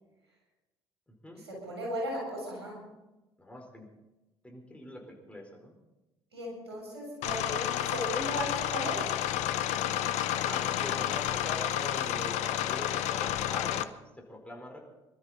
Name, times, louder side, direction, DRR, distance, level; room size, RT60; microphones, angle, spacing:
voice 1, 1.4-2.8 6.3-9.1, equal, 85° right, -3 dB, 7.3 m, -36 dB
voice 2, 3.4-3.9 4.4-5.8 10.4-13.9 14.3-14.8, left 1 dB, 10° left, 0 dB, 4.6 m, -43 dB
sound 1, 7.2-13.8, left 12 dB, 60° left, 0.8 m, -30 dB
25.5 x 13.0 x 4.3 m, 1.0 s
figure-of-eight pair, 55°, 14 cm